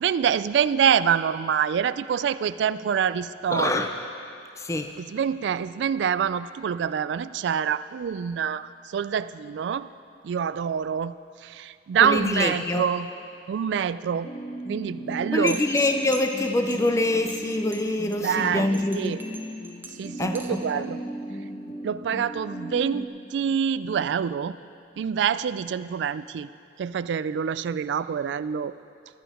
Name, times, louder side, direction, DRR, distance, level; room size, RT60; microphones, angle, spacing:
voice 1, 0.0-3.9 5.0-9.9 10.2-11.1 11.4-13.1 13.5-14.3 14.7-15.6 18.2-19.2 20.0-21.0 21.8-24.6 25.0-26.5 26.8-28.7, right 7 dB, 80° right, 15 dB, 0.3 m, -26 dB
voice 2, 3.5-3.9 4.6-4.9 12.0-12.9 15.3-19.2 20.2-20.8, left 2 dB, 15° left, 6 dB, 0.4 m, -25 dB
sound 1, 14.1-23.1, right 1 dB, 40° left, 1.1 m, -37 dB
sound 2, 15.5-20.7, right 1 dB, 10° right, 0.8 m, -41 dB
13.0 x 9.1 x 4.8 m, 2.5 s
head